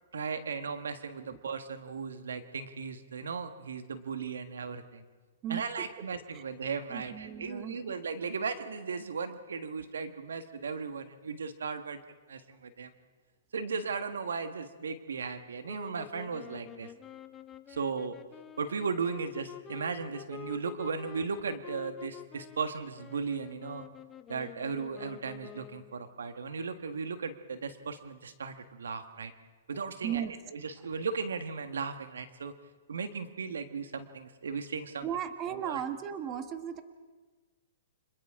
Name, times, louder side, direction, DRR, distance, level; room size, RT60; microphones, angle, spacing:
voice 1, 0.1-5.0 5.5-12.0 12.3-12.9 13.5-16.9 17.7-18.1 18.6-23.8 24.3-29.3 29.7-30.2 30.5-32.5 32.9-35.0 35.5-35.8, right 5 dB, 90° right, 9 dB, 1.6 m, -36 dB
voice 2, 5.4-5.9 6.3-6.4 6.9-8.0 30.0-30.4 35.0-36.8, right 9 dB, 30° right, 9 dB, 1.4 m, -36 dB
sound 1, 15.6-26.1, left 11 dB, 20° left, 0.7 m, -48 dB
30.0 x 26.0 x 3.7 m, 1.4 s
hypercardioid pair, 140°, 0 cm